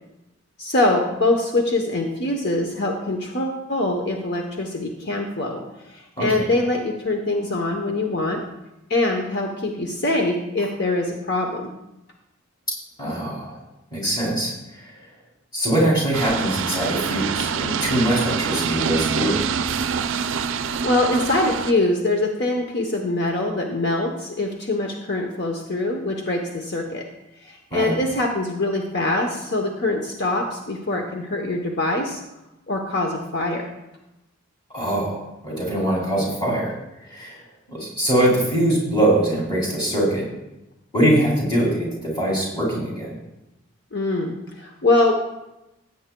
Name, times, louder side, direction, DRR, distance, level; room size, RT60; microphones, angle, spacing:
voice 1, 0.6-5.6 5.9-8.4 8.9-11.7 20.6-27.0 27.4-32.2 32.7-33.6 43.9-45.1, left 2 dB, 50° left, 2 dB, 0.9 m, -23 dB
voice 2, 13.0-13.6 13.9-15.0 15.5-19.4 27.7-28.0 34.7-36.7 37.0-37.4 37.7-40.3 40.9-43.2, right 1 dB, 20° left, -4 dB, 2.9 m, -22 dB
sound 1, 16.1-21.7, right 6 dB, 60° right, 0.4 m, -25 dB
16.0 x 8.6 x 2.2 m, 0.93 s
head